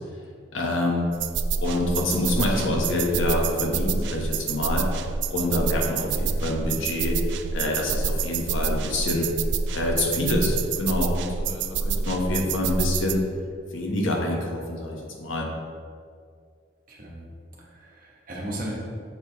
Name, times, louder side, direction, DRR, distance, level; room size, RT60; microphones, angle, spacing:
voice 1, 0.5-1.1 1.6-4.9 5.3-7.2 7.5-9.3 9.7-13.2 13.7-15.5, left 1 dB, 85° left, 0 dB, 1.0 m, -26 dB
sound 1, 1.1-13.1, right 5 dB, 65° right, 0.3 m, -27 dB
voice 2, 6.0-6.3 16.9-17.2 17.6-18.7, right 1 dB, 45° right, -3 dB, 1.3 m, -36 dB
6.7 x 4.7 x 3.4 m, 2.2 s
head